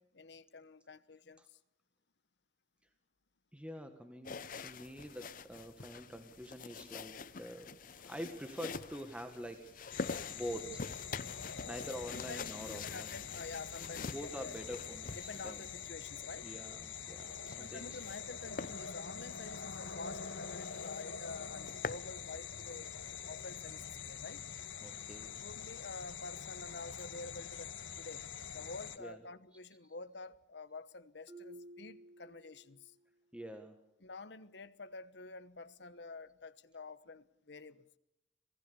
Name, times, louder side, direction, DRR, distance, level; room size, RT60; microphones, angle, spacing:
voice 1, 0.0-1.6 10.6-10.8 11.6-11.7 12.1-14.6 15.2-16.5 17.6-22.9 23.2-24.5 25.2-32.9 34.0-37.8, left 3 dB, 65° left, 1.1 m, -49 dB
voice 2, 3.5-10.8 11.7-13.1 14.0-15.6 16.4-18.0 24.8-25.3 29.0-29.2 33.3-33.8, equal, 5° right, 1.6 m, -46 dB
sound 1, 4.2-15.9 17.2-18.2 18.6-18.8 19.2-19.4 19.8-19.9 20.2-20.3 20.6-21.0 21.4-22.1, left 4 dB, 45° left, 0.8 m, -46 dB
sound 2, 9.9-29.0, left 7 dB, 85° left, 1.5 m, -45 dB
Marimba xylophone, 31.3-33.0, right 1 dB, 20° right, 5.2 m, -54 dB
26.5 x 18.0 x 7.0 m
head